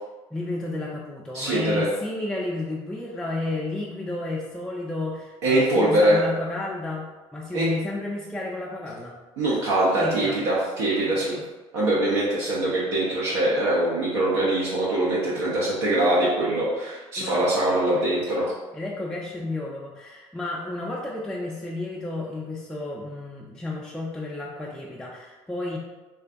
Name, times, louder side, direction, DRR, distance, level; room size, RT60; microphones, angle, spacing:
voice 1, 0.3-9.2 9.9-10.4 11.1-11.4 17.2-17.5 17.9-18.1 18.7-25.8, left 2 dB, 5° left, -4 dB, 0.3 m, -32 dB
voice 2, 1.3-1.9 5.4-6.2 7.5-7.7 9.4-11.3 11.7-18.5, right 1 dB, 75° right, -7 dB, 0.5 m, -23 dB
2.4 x 2.2 x 2.4 m, 1.2 s
hypercardioid pair, 60°, 15 cm